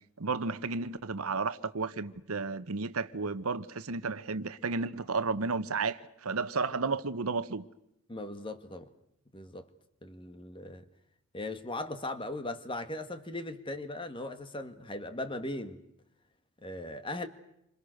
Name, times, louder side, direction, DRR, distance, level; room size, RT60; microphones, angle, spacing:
voice 1, 0.2-7.7, right 4 dB, 80° right, 1.0 m, -32 dB
voice 2, 8.1-8.9 9.3-9.7 10.0-10.9 11.3-15.8 16.6-17.3, left 2 dB, 25° left, 1.6 m, -38 dB
28.5 x 26.0 x 6.5 m
head